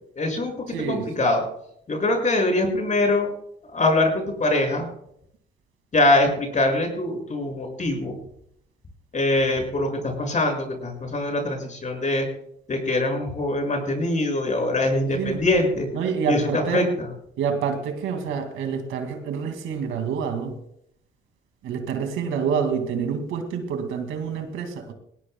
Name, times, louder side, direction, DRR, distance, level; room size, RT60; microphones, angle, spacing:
voice 1, 0.2-0.5 0.9-1.4 1.9-3.3 3.7-4.9 5.9-8.2 9.1-12.3 12.7-15.9 16.3-17.1, left 2 dB, 40° left, 2 dB, 6.2 m, -23 dB
voice 2, 0.7-1.1 15.0-15.4 15.9-16.9 17.4-20.6 21.6-24.9, right 6 dB, 90° right, 5 dB, 2.4 m, -27 dB
20.0 x 18.5 x 2.3 m, 0.71 s
cardioid pair, 90°, 20 cm